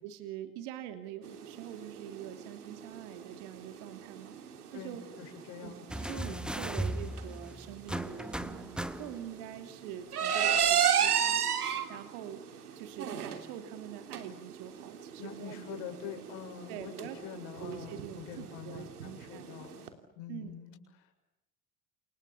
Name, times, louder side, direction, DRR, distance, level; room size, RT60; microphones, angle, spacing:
voice 1, 0.0-4.3 4.7-5.0 5.6-5.7 6.0-11.4 11.9-12.4 12.7-15.8 16.7-17.2 17.6-19.5 20.3-20.6, right 10 dB, 65° right, 8 dB, 3.1 m, -44 dB
sound 1, 1.2-19.9, right 8 dB, 85° right, 3.2 m, -34 dB
voice 2, 4.7-6.8 15.2-21.1, left 8 dB, 65° left, 4 dB, 7.4 m, -46 dB
sound 2, 5.9-9.4 10.6-10.7, right 1 dB, ahead, 1.8 m, -37 dB
29.5 x 27.0 x 7.2 m, 0.90 s
hypercardioid pair, 65°, 45 cm